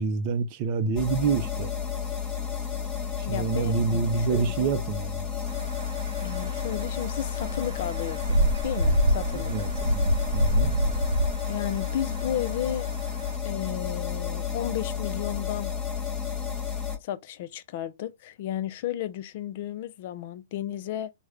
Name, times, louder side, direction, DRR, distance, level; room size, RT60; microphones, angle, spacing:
voice 1, 0.0-1.7 3.2-5.3 9.3-10.7, right 5 dB, 35° right, 0.5 m, -27 dB
sound 1, 1.0-17.0, left 7 dB, 10° left, 1.0 m, -32 dB
voice 2, 3.2-4.7 6.2-9.5 11.5-12.9 13.4-15.7 17.0-21.1, left 11 dB, 45° left, 0.4 m, -33 dB
sound 2, 5.5-13.3, equal, 90° right, 0.6 m, -27 dB
3.5 x 2.1 x 3.2 m
hypercardioid pair, 155°, 0 cm